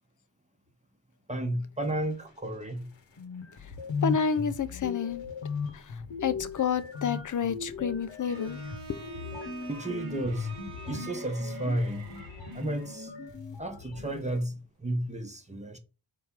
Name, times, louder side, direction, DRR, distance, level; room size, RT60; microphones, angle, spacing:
voice 1, 1.3-2.9 9.7-10.5 10.9-12.1 12.5-13.1 13.6-15.8, right 1 dB, 15° right, 0.9 m, -32 dB
sound 1, 2.8-2.9 3.2-14.4, left 5 dB, 70° left, 1.1 m, -37 dB
voice 2, 4.0-5.3 5.7-8.6 8.9-9.0, left 6 dB, 40° left, 0.6 m, -30 dB
Bowed string instrument, 8.3-13.1, right 6 dB, 80° right, 1.1 m, -47 dB
4.2 x 3.4 x 3.6 m
cardioid pair, 50°, 47 cm